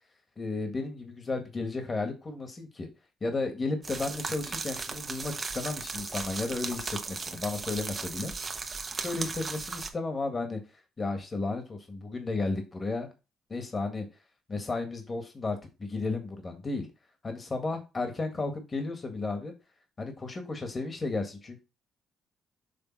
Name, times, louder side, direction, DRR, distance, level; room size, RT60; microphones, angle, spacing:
voice 1, 0.4-2.9 3.2-8.3 9.0-10.6 11.0-13.1 13.5-14.1 14.5-16.9 17.2-19.5 20.0-21.6, left 3 dB, 35° left, 5 dB, 1.7 m, -33 dB
sound 1, 3.8-9.9, right 4 dB, 35° right, 0.9 m, -37 dB
6.8 x 3.4 x 4.5 m, 0.28 s
cardioid pair, 90°, 0 cm